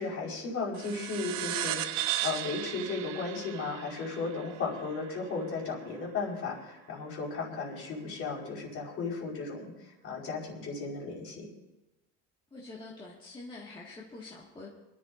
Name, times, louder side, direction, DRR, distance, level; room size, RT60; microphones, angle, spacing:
voice 1, 0.0-9.7 10.0-11.5, left 4 dB, 45° left, -2 dB, 4.6 m, -35 dB
sound 1, 0.7-5.7, right 13 dB, 70° right, 0.8 m, -36 dB
voice 2, 12.5-14.7, left 3 dB, 15° left, -5 dB, 1.8 m, -45 dB
28.0 x 11.5 x 2.6 m, 1.0 s
cardioid pair, 150°, 30 cm